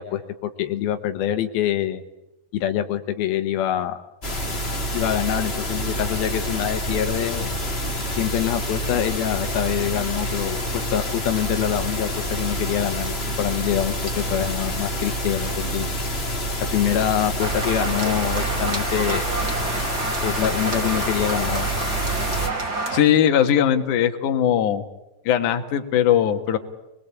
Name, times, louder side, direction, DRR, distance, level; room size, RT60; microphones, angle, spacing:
voice 1, 0.0-2.0 2.5-4.0 4.9-7.5 8.2-15.9 16.7-19.3 20.2-21.7, left 11 dB, 85° left, 8 dB, 3.0 m, -25 dB
sound 1, 4.2-22.5, equal, 20° left, 2.0 m, -27 dB
sound 2, 17.4-23.0, right 3 dB, 30° right, 3.1 m, -28 dB
voice 2, 22.9-24.8 25.3-26.6, left 10 dB, 60° left, 6 dB, 2.9 m, -19 dB
27.5 x 21.0 x 8.4 m, 0.94 s
omnidirectional pair, 4.2 m